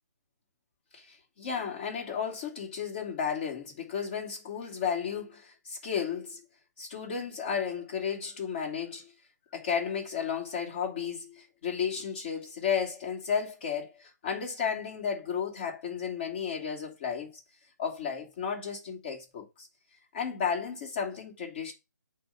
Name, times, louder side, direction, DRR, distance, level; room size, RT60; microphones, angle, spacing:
voice 1, 0.9-6.4 6.8-9.1 9.5-17.3 17.8-19.7 20.1-21.7, left 7 dB, 30° left, 2.5 m, -33 dB
8.6 x 3.0 x 5.7 m
figure-of-eight pair, 150°, 10 cm